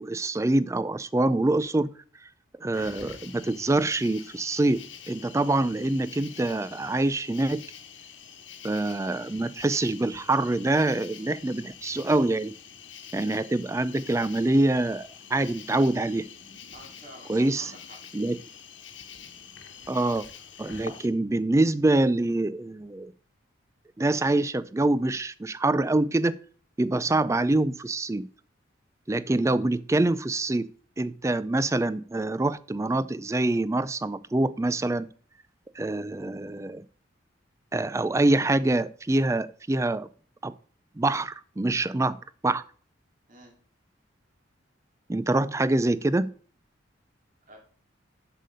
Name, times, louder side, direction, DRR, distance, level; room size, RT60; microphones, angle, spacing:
voice 1, 0.0-1.9 2.6-7.6 8.6-12.5 13.1-16.2 17.3-17.7 18.1-18.4 19.9-20.3 20.6-23.1 24.0-26.3 26.8-28.3 29.1-30.7 31.0-35.1 35.8-36.8 37.7-40.1 40.4-40.5 41.0-42.6 45.1-46.3, right 2 dB, 15° right, 0.3 m, -25 dB
Cricket, 2.7-21.1, left 7 dB, 75° left, 1.2 m, -46 dB
voice 2, 16.7-18.0 43.3-43.5 47.5-47.6, right 1 dB, 45° right, 2.8 m, -49 dB
7.5 x 6.7 x 5.3 m
head